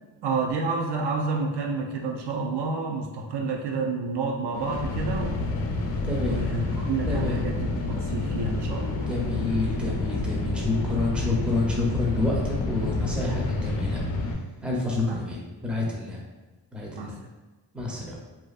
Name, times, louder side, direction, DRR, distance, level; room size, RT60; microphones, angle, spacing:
voice 1, 0.2-5.5 6.2-9.1 15.0-15.2 17.0-17.3, right 3 dB, 60° right, 1 dB, 0.5 m, -29 dB
sound 1, 4.5-14.3, left 3 dB, 75° left, 0.5 m, -29 dB
voice 2, 6.0-6.4 7.1-7.4 9.1-14.0 14.6-16.2 16.7-17.1 17.7-18.2, left 2 dB, ahead, -4 dB, 0.5 m, -28 dB
2.5 x 2.4 x 2.3 m, 1.2 s
cardioid pair, 80°, 46 cm